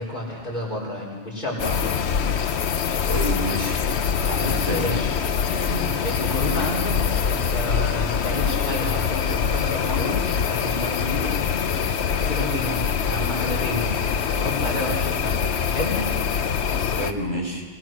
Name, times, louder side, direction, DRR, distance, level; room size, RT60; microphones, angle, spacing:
voice 1, 0.0-2.0 4.4-5.1 5.5-11.3 12.1-14.0 14.2-16.0, left 1 dB, 45° left, -4 dB, 4.4 m, -30 dB
sound 1, 1.6-17.1, left 7 dB, 70° left, 1.1 m, -24 dB
voice 2, 3.1-3.8 4.2-5.0 16.9-17.6, right 1 dB, 30° right, 0 dB, 3.7 m, -28 dB
25.0 x 19.5 x 6.2 m, 1.5 s
omnidirectional pair, 1.2 m